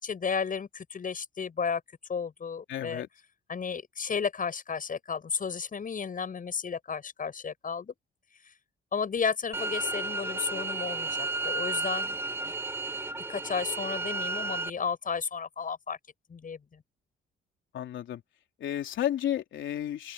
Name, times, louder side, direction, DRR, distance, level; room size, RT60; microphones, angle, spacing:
voice 1, 0.0-1.8 2.1-3.0 3.5-7.9 8.9-12.5 13.3-16.0 16.3-16.8, left 6 dB, 45° left, 7.8 m, -33 dB
voice 2, 2.7-3.1 17.7-18.2 18.6-20.1, left 11 dB, 75° left, 3.6 m, -32 dB
sound 1, 9.5-14.7, right 3 dB, 10° right, 1.4 m, -33 dB
open air
cardioid pair, 90°, 20 cm